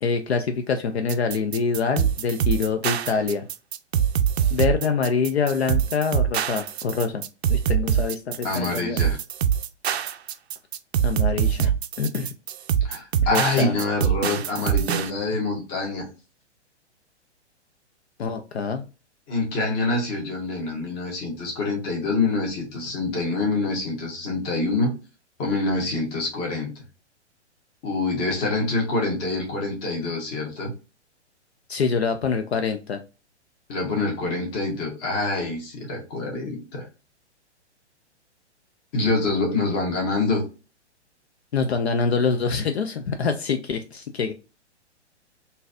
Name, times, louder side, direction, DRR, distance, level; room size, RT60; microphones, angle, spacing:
voice 1, 0.0-3.5 4.5-7.2 7.5-9.0 11.0-11.7 12.0-12.3 13.3-13.7 18.2-18.8 31.7-33.0 41.5-44.3, left 5 dB, 65° left, 7 dB, 0.6 m, -25 dB
sound 1, 1.1-15.1, right 8 dB, 65° right, 0.5 m, -24 dB
voice 2, 8.4-9.2 11.6-11.7 12.8-16.0 19.3-24.9 25.4-26.7 27.8-30.7 33.7-36.9 38.9-40.4, left 3 dB, 30° left, 0 dB, 1.4 m, -26 dB
3.7 x 2.7 x 2.4 m, 0.31 s
figure-of-eight pair, 115°, 35 cm